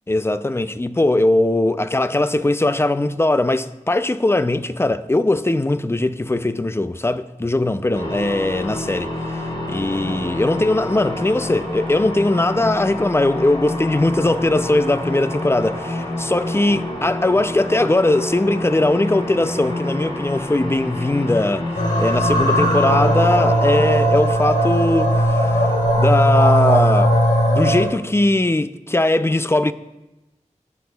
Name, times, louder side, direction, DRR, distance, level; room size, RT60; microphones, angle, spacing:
voice 1, 0.1-9.1 9.7-21.7 22.0-25.5 26.0-27.1 27.5-29.7, left 2 dB, 20° left, 0.4 m, -20 dB
sound 1, 7.9-26.2, left 1 dB, 40° left, 1.9 m, -28 dB
sound 2, 21.8-27.9, right 1 dB, 80° left, 1.4 m, -18 dB
14.5 x 6.0 x 2.3 m
wide cardioid pair, 50°, 13 cm